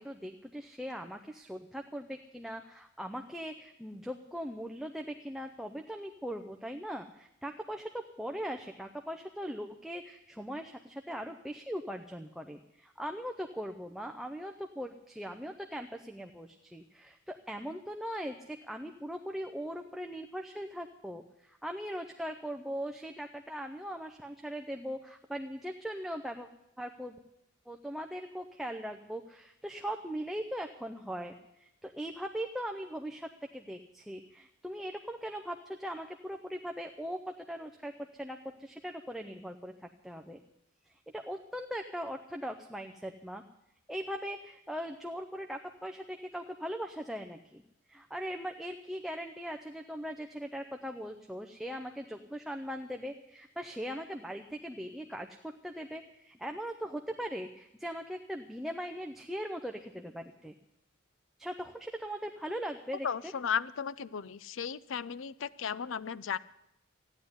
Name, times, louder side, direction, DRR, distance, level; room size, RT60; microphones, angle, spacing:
voice 1, 0.0-26.5 26.8-27.2 27.7-40.4 41.1-43.4 43.9-47.6 47.9-60.5 61.4-63.1, equal, ahead, 4 dB, 0.5 m, -40 dB
voice 2, 63.0-66.4, left 7 dB, 75° left, 19 dB, 0.5 m, -35 dB
14.5 x 9.7 x 9.5 m, 0.81 s
head